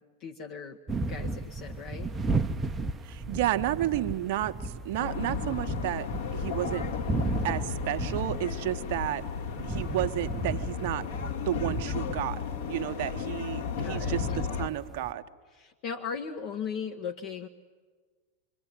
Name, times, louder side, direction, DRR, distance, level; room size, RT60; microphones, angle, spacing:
voice 1, 0.2-2.2 13.8-14.4 15.6-17.5, left 6 dB, 40° left, 5 dB, 1.1 m, -38 dB
sound 1, 0.9-15.1, right 3 dB, 15° right, 0.9 m, -35 dB
voice 2, 3.0-6.1 6.3-9.2 9.6-11.0 11.4-15.2, right 13 dB, 50° right, 10 dB, 1.1 m, -32 dB
sound 2, 5.0-14.7, left 7 dB, 55° left, 2.2 m, -35 dB
27.5 x 23.5 x 9.2 m, 1.5 s
figure-of-eight pair, 90°, 0 cm